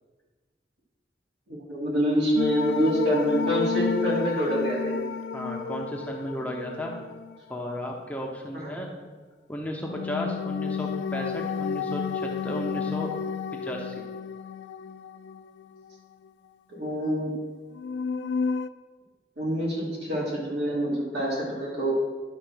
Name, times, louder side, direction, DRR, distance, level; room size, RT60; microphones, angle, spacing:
voice 1, 1.5-5.1 8.5-8.8 16.7-17.3 19.4-21.9, equal, 75° right, -4 dB, 2.8 m, -26 dB
sound 1, 2.4-7.6 9.8-16.0 16.3-16.4 17.7-18.7, left 5 dB, 80° left, 0.3 m, -31 dB
voice 2, 5.3-6.9 7.5-8.9 9.5-13.1 13.5-14.0, equal, 10° left, 0 dB, 0.8 m, -34 dB
10.5 x 4.3 x 6.1 m, 1.4 s
head